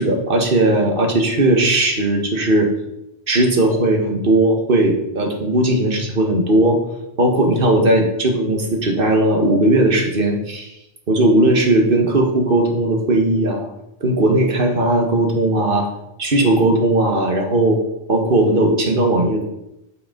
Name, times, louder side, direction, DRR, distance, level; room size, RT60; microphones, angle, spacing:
voice 1, 0.0-2.7 3.3-6.8 7.2-10.7 11.1-13.7 14.0-15.9 16.2-17.8 18.1-19.4, right 1 dB, 55° right, 2 dB, 1.7 m, -17 dB
8.6 x 8.1 x 3.8 m, 0.87 s
omnidirectional pair, 1.2 m